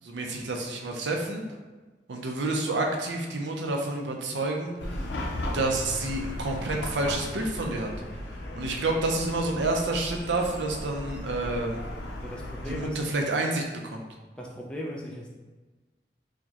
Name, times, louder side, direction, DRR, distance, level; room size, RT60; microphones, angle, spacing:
voice 1, 0.0-1.4 2.1-4.7 5.5-7.9 8.5-11.8 12.7-14.0, right 2 dB, 80° right, 2 dB, 0.5 m, -29 dB
Chatter / Car passing by / Traffic noise roadway noise, 4.8-12.9, left 1 dB, 80° left, 0.5 m, -36 dB
voice 2, 12.2-13.0 14.4-15.3, equal, 5° left, -2 dB, 0.4 m, -37 dB
4.6 x 2.2 x 2.8 m, 1.2 s
head